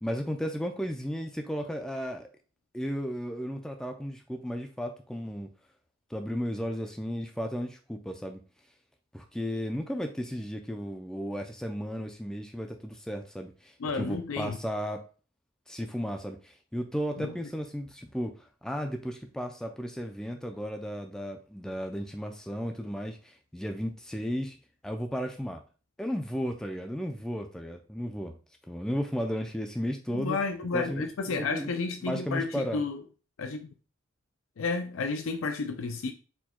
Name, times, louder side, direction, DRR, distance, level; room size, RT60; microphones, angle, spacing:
voice 1, 0.0-2.3 2.7-5.5 6.1-8.4 9.1-15.1 15.7-24.6 24.8-25.6 26.0-28.3 28.7-30.4 30.7-31.7 32.0-32.8, equal, 5° left, 0.3 m, -34 dB
voice 2, 13.8-14.6 17.2-17.3 30.1-33.0 33.4-33.7 34.6-36.1, left 4 dB, 80° left, 0.4 m, -31 dB
4.4 x 2.2 x 4.2 m
head